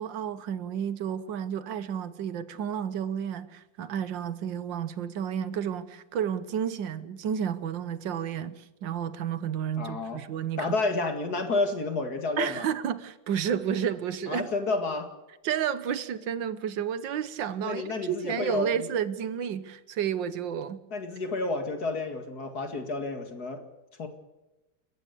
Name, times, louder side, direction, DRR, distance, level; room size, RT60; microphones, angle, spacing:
voice 1, 0.0-10.7 12.4-14.5 15.4-20.8, right 8 dB, 70° right, 1.7 m, -31 dB
voice 2, 9.8-10.2 10.6-12.7 14.3-15.1 17.6-18.9 20.9-23.6 24.0-24.1, left 3 dB, 50° left, 2.5 m, -30 dB
30.0 x 15.0 x 6.9 m
omnidirectional pair, 2.1 m